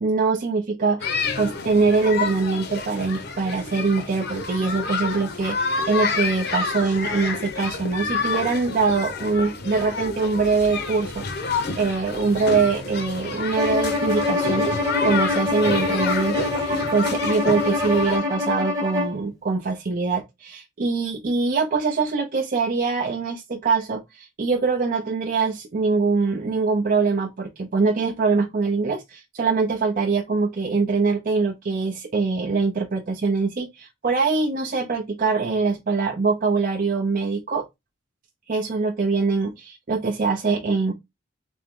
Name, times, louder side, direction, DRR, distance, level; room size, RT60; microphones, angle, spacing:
voice 1, 0.0-37.6 38.5-40.9, right 4 dB, 45° right, 0.5 m, -23 dB
sound 1, 1.0-18.2, left 4 dB, 55° left, 0.8 m, -29 dB
Bowed string instrument, 13.6-19.2, left 2 dB, 15° right, 0.9 m, -25 dB
3.5 x 2.9 x 3.5 m
head